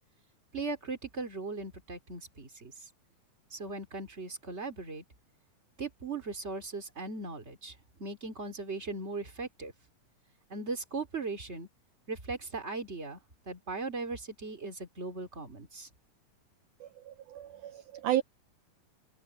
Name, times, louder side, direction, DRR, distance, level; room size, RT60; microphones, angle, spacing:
voice 1, 0.5-2.7 3.5-5.0 5.8-7.7 8.0-9.7 10.5-11.7 12.1-13.2 13.5-15.9, right 3 dB, 20° right, 3.0 m, -38 dB
voice 2, 16.8-18.2, right 13 dB, 90° right, 1.8 m, -33 dB
open air
omnidirectional pair, 4.3 m